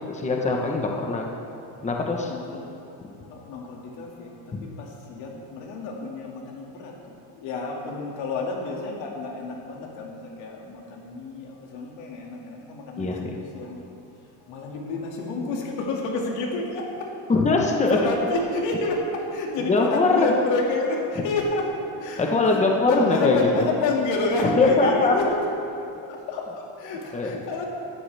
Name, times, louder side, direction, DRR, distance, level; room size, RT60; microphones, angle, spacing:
voice 1, 0.1-1.2 1.8-2.3 4.5-4.6 13.0-13.3 17.3-18.0 19.7-20.3 22.2-23.6 24.6-25.1 27.1-27.4, left 3 dB, 15° left, 0 dB, 1.2 m, -22 dB
voice 2, 2.2-2.7 3.0-13.9 14.4-17.1 17.9-21.7 22.0-25.4 26.0-27.6, left 3 dB, 90° left, -1 dB, 2.4 m, -29 dB
15.5 x 12.0 x 3.5 m, 2.7 s
cardioid pair, 140°, 42 cm